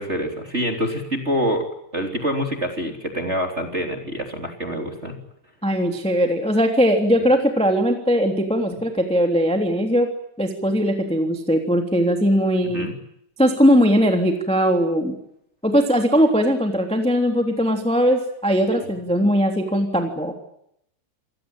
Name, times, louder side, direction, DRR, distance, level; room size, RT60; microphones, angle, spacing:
voice 1, 0.0-1.7 1.9-5.2 12.7-12.9 18.8-18.9, equal, 15° right, 4 dB, 2.8 m, -26 dB
voice 2, 5.6-10.1 10.4-12.9 13.4-15.1 15.6-20.3, equal, ahead, 4 dB, 2.1 m, -19 dB
28.0 x 19.0 x 9.2 m, 0.75 s
omnidirectional pair, 5.3 m